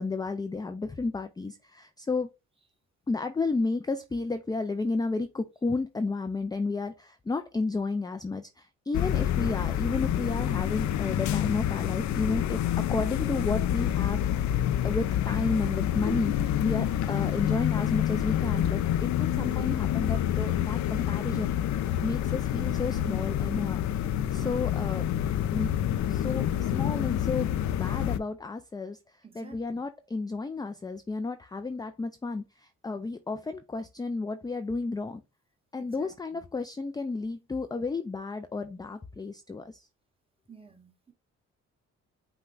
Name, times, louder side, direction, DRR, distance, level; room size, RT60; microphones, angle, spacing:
voice 1, 0.0-2.3 3.1-14.2 14.5-21.5 22.0-23.8 24.3-25.0 25.5-25.7 26.1-29.0 29.4-32.5 32.8-35.2 35.7-39.8, left 3 dB, 15° left, 0.4 m, -32 dB
sound 1, 8.9-28.2, left 11 dB, 70° left, 0.5 m, -28 dB
voice 2, 29.2-29.8 35.8-36.5 40.5-41.1, right 5 dB, 20° right, 1.4 m, -52 dB
5.7 x 2.3 x 3.8 m
cardioid pair, 90°, 30 cm